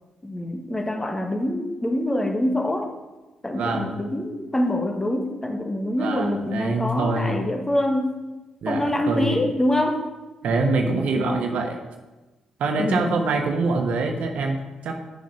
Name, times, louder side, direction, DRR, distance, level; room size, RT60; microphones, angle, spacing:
voice 1, 0.2-2.9 3.4-8.1 8.6-10.0 11.1-11.5 12.8-13.3, left 1 dB, 20° left, 3 dB, 1.7 m, -25 dB
voice 2, 3.5-3.9 6.0-7.4 8.6-9.4 10.4-11.8 12.6-14.9, right 3 dB, 70° right, 3 dB, 1.3 m, -25 dB
9.2 x 6.6 x 6.4 m, 1.1 s
hypercardioid pair, 45°, 2 cm